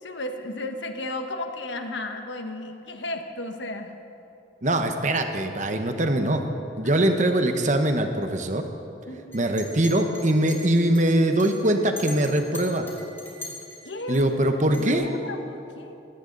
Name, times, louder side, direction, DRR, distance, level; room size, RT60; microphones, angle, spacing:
voice 1, 0.0-4.0 6.8-6.9 9.1-9.4 13.8-14.2 14.5-15.9, left 2 dB, 85° left, 6 dB, 1.4 m, -34 dB
voice 2, 4.6-6.4 6.8-8.7 9.3-12.9 14.1-15.1, right 1 dB, 40° right, 6 dB, 1.1 m, -22 dB
Chink clink, 9.3-14.2 14.7-14.9, left 2 dB, 10° left, 3.1 m, -40 dB
20.5 x 16.5 x 4.0 m, 2.9 s
head